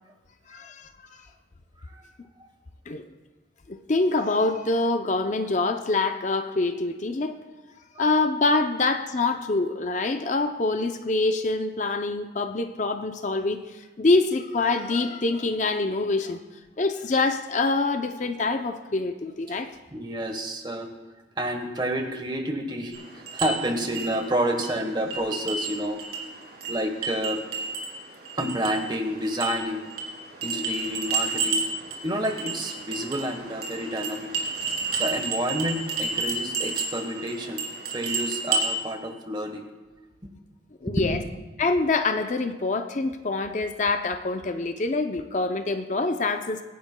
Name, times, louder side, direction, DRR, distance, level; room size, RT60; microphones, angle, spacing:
voice 1, 0.5-0.9 2.9-3.1 3.7-7.4 8.0-16.4 16.8-19.7 40.8-41.2 41.6-46.6, left 3 dB, 40° left, 7 dB, 0.5 m, -25 dB
voice 2, 19.9-20.9 21.4-23.0 23.3-26.0 26.7-27.4 28.4-29.9 30.4-31.6 32.0-34.3 35.0-39.7 40.2-40.3 40.8-41.2, right 1 dB, 25° right, 5 dB, 1.1 m, -29 dB
sound 1, 22.9-38.8, right 4 dB, 55° right, 2.5 m, -31 dB
24.0 x 10.0 x 2.2 m, 1.3 s
head